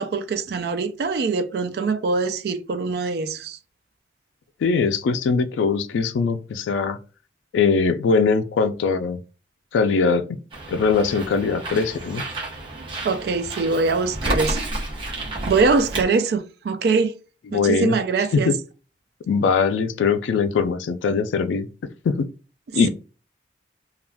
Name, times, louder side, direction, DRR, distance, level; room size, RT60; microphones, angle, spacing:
voice 1, 0.0-3.6 13.0-14.6 15.5-17.1 17.5-18.5, right 4 dB, 60° right, 0.3 m, -23 dB
voice 2, 4.6-7.0 7.5-9.2 9.7-10.4 10.7-12.2 17.5-18.0 18.3-18.5 19.3-21.7 22.0-22.3 22.7-22.9, left 5 dB, 90° left, 0.3 m, -21 dB
Bird, 10.5-16.1, right 2 dB, 25° right, 0.7 m, -30 dB
2.3 x 2.2 x 3.3 m
head